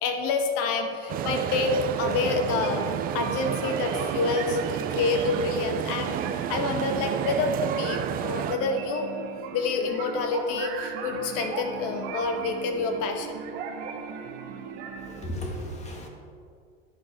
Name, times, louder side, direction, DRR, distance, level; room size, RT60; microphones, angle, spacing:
voice 1, 0.0-9.1 9.5-13.4, left 4 dB, 50° left, 5 dB, 1.7 m, -28 dB
sound 1, 1.1-8.6, right 10 dB, 30° right, 0.5 m, -30 dB
sound 2, 2.2-15.3, right 7 dB, 70° right, 1.7 m, -37 dB
voice 2, 15.0-16.1, equal, 20° left, 0 dB, 1.8 m, -35 dB
11.0 x 10.5 x 4.6 m, 2.3 s
supercardioid pair, 140°, 30 cm